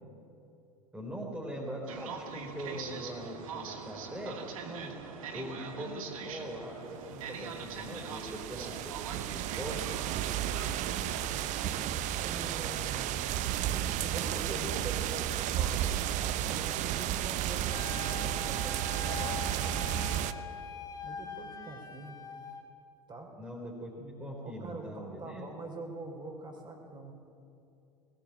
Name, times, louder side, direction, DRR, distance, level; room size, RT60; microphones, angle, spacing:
voice 1, 0.9-4.4 5.3-9.8 14.5-14.7 23.4-25.5, equal, 5° right, -2 dB, 3.7 m, -41 dB
sound 1, 1.9-20.4, right 6 dB, 65° right, 2.3 m, -45 dB
voice 2, 4.6-5.0 10.8-13.2 14.0-20.1 21.0-22.2 23.1-23.3 24.4-27.1, right 3 dB, 25° right, 2 dB, 4.8 m, -44 dB
sound 2, 7.4-20.3, right 11 dB, 40° right, 0.9 m, -33 dB
Wind instrument woodwind instrument, 17.7-22.7, left 5 dB, 20° left, 3.3 m, -43 dB
20.5 x 19.0 x 8.8 m, 2.6 s
figure-of-eight pair, 80°, 19 cm